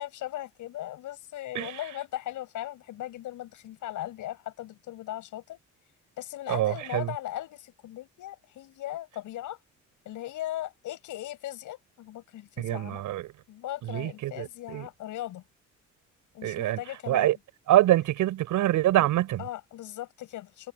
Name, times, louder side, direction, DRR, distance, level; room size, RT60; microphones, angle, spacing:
voice 1, 0.0-5.6 6.2-9.6 10.0-13.0 13.5-15.4 16.3-17.4 19.4-20.7, left 14 dB, 85° left, 7.8 m, -38 dB
voice 2, 6.5-7.1 12.6-13.3 13.8-14.9 16.4-16.8 17.1-17.4 17.7-19.4, right 14 dB, 85° right, 6.2 m, -25 dB
cardioid pair, 90°, 30 cm